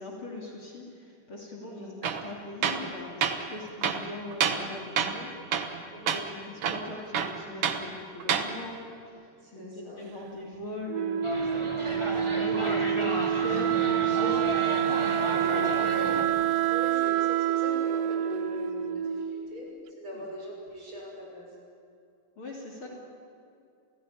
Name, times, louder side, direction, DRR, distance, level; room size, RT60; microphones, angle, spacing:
voice 1, 0.0-5.7 6.1-9.3 9.5-11.8 12.3-15.3 15.8-16.0 20.1-20.2 22.4-22.9, left 1 dB, 40° left, -1 dB, 3.4 m, -40 dB
voice 2, 1.6-2.0 5.9-6.3 9.4-10.0 11.7-12.1 15.3-16.2 16.7-19.7 20.0-21.5 22.8-22.9, equal, 40° right, -3 dB, 7.2 m, -40 dB
Tools, 2.0-2.2 2.6-2.9 3.2-3.4 3.8-4.7 5.0-5.2 5.5-5.8 6.1-6.2 6.6-7.8 8.2-8.5, right 7 dB, 55° right, 1.9 m, -28 dB
Wind instrument woodwind instrument, 10.9-19.6, right 11 dB, 85° right, 1.3 m, -27 dB
sound 1, 11.2-16.2, equal, 10° right, 2.2 m, -34 dB
28.5 x 16.5 x 9.9 m, 2.4 s
omnidirectional pair, 3.7 m